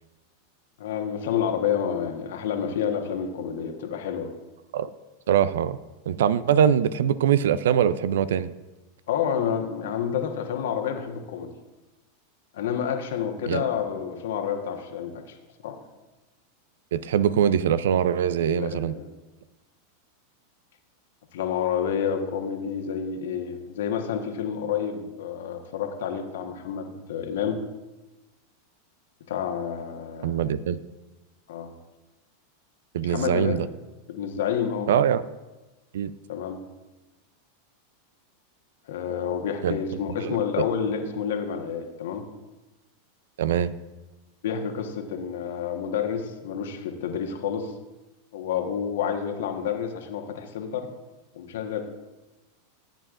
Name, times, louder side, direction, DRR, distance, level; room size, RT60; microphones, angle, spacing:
voice 1, 0.8-4.3 9.1-11.5 12.5-15.4 15.6-15.8 18.4-19.1 21.3-27.6 29.3-30.5 31.5-31.7 33.1-33.6 34.1-34.9 36.3-36.6 38.9-42.2 44.4-47.7 48.3-50.9 51.3-51.8, left 8 dB, 70° left, 5 dB, 1.3 m, -29 dB
voice 2, 5.3-5.8 6.1-8.5 13.5-13.6 16.9-18.9 30.2-30.8 32.9-33.7 34.9-35.2 35.9-36.1 39.6-39.8 40.2-40.4 43.4-43.7, right 9 dB, 70° right, 16 dB, 0.4 m, -22 dB
16.0 x 9.0 x 2.5 m, 1.1 s
hypercardioid pair, 95°, 0 cm